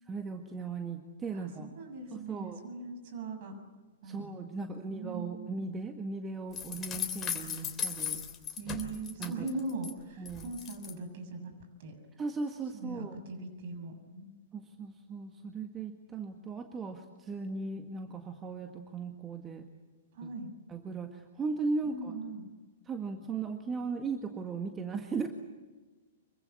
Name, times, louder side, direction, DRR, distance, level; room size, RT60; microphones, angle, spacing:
voice 1, 0.1-1.7 2.1-2.6 4.0-8.2 9.2-9.5 10.2-10.5 12.2-13.1 14.5-19.7 20.2-20.3 20.7-22.1 22.9-25.3, right 4 dB, 20° right, 5 dB, 1.8 m, -37 dB
voice 2, 1.3-3.6 4.0-5.5 8.6-12.0 12.7-14.3 20.1-20.5 21.8-22.5, right 3 dB, 50° right, 7 dB, 6.8 m, -41 dB
sound 1, 6.5-9.9 10.2-10.9, left 8 dB, 20° left, 3.2 m, -37 dB
26.0 x 24.0 x 8.5 m, 1.3 s
figure-of-eight pair, 105°, 0 cm